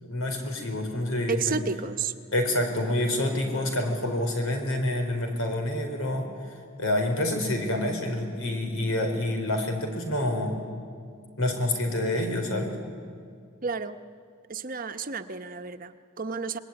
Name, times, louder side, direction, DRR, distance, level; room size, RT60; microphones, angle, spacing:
voice 1, 0.0-1.6 2.3-6.3 6.8-10.7 11.4-12.8, left 1 dB, 90° left, 4 dB, 4.6 m, -27 dB
voice 2, 1.3-2.1 13.6-14.0 14.5-16.6, right 5 dB, 45° right, 8 dB, 1.0 m, -31 dB
26.0 x 21.0 x 9.8 m, 2.2 s
head